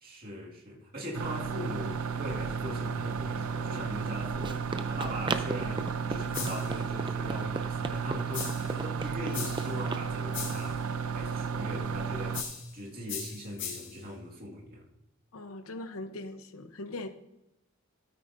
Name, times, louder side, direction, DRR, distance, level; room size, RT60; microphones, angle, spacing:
voice 1, 0.0-10.8 11.1-14.8, equal, 45° right, 2.2 m, -40 dB
sound 1, 1.1-12.4, right 6 dB, 90° right, 0.7 m, -33 dB
Run, 3.9-10.1, right 3 dB, 20° right, 0.5 m, -38 dB
sound 2, 6.3-6.8 8.3-8.8 9.3-9.8 10.3-10.8 12.3-12.8 13.1-14.0, left 7 dB, 60° left, 2.0 m, -38 dB
voice 2, 15.3-17.1, left 2 dB, 80° left, 0.9 m, -40 dB
13.0 x 9.2 x 2.7 m
head